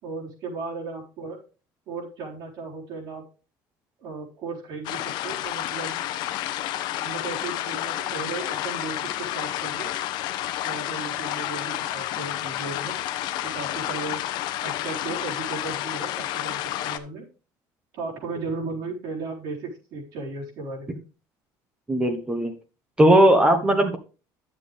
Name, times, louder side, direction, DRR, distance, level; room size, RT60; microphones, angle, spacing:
voice 1, 0.0-1.4 1.9-3.2 4.0-6.0 7.0-10.0 10.6-13.0 13.4-14.2 14.6-17.2 17.9-21.0, right 3 dB, 65° right, -2 dB, 4.2 m, -35 dB
sound 1, 4.8-17.0, left 13 dB, 70° left, 0.8 m, -30 dB
voice 2, 21.9-22.5 23.0-24.0, right 1 dB, 10° right, 6 dB, 1.2 m, -18 dB
10.5 x 7.5 x 3.5 m, 0.34 s
cardioid pair, 150°, 8 cm